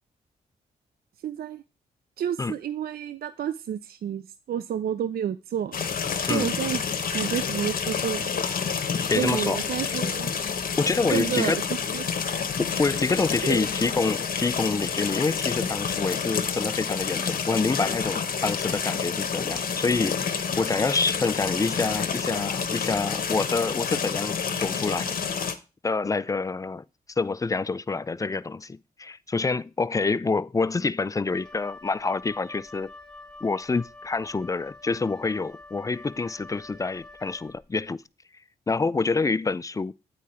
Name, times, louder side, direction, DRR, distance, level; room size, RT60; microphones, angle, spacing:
voice 1, 1.2-1.6 2.2-5.8 6.2-6.8 7.1-8.3 9.2-10.3 11.1-11.6 11.9-12.0 13.4-13.6, right 9 dB, 60° right, 0.4 m, -30 dB
sound 1, 5.7-25.5, left 6 dB, 55° left, 0.9 m, -29 dB
voice 2, 8.9-9.6 9.8-10.0 10.8-11.6 12.6-25.1 25.8-26.8 27.2-32.9 33.4-38.0 38.7-39.9, left 4 dB, 20° left, 0.4 m, -27 dB
Wind instrument woodwind instrument, 31.3-37.9, left 2 dB, 5° left, 1.5 m, -46 dB
8.3 x 4.8 x 4.3 m
supercardioid pair, 45°, 18 cm